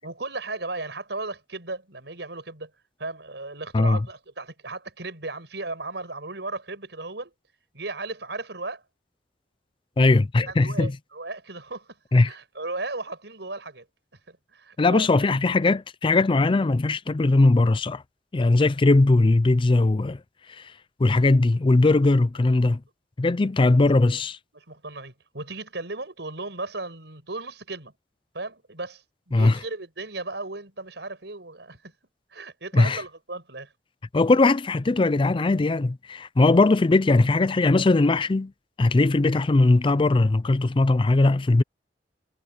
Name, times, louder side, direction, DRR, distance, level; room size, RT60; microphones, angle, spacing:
voice 1, 0.0-2.7 3.0-7.3 7.7-8.8 10.5-12.0 12.2-13.8 14.3-15.3 23.6-23.7 24.5-27.9 28.3-31.9 32.3-33.7, right 3 dB, 75° right, 6.2 m, -36 dB
voice 2, 10.0-10.9 12.1-12.3 14.8-18.0 18.3-20.2 20.6-20.7 21.0-22.8 23.2-24.4 29.3-29.6 32.7-33.0 34.1-38.5 38.8-41.6, left 2 dB, 30° left, 0.4 m, -20 dB
head